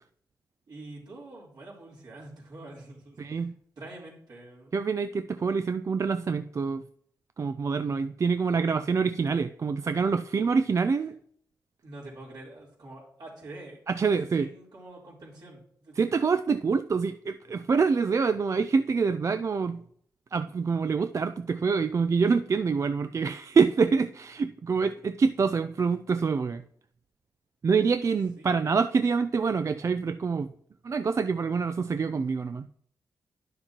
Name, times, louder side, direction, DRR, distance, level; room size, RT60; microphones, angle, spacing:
voice 1, 0.7-3.5 3.8-4.7 11.8-13.8 14.4-16.3 28.4-28.7, right 2 dB, 70° right, -6 dB, 3.6 m, -46 dB
voice 2, 3.2-3.5 4.7-6.8 7.4-11.1 13.9-14.5 16.0-19.8 20.3-26.6 27.6-30.5 30.8-32.7, right 5 dB, 40° right, 11 dB, 0.3 m, -26 dB
10.0 x 6.6 x 2.9 m, 0.65 s
supercardioid pair, 50°, 7 cm